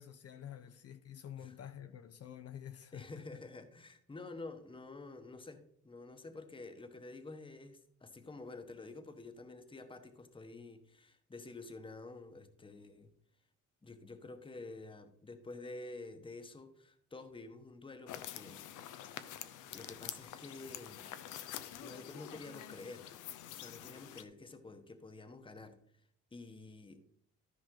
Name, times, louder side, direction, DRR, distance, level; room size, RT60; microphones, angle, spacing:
voice 1, 0.0-3.2, left 10 dB, 55° left, 0.7 m, -49 dB
voice 2, 2.9-13.1 13.8-19.2 19.7-21.2 21.8-23.1 23.5-25.8 26.3-27.0, left 3 dB, 15° left, 1.1 m, -49 dB
sound 1, 18.1-24.2, left 11 dB, 85° left, 0.7 m, -47 dB
13.5 x 5.2 x 3.8 m
cardioid pair, 90°, 30 cm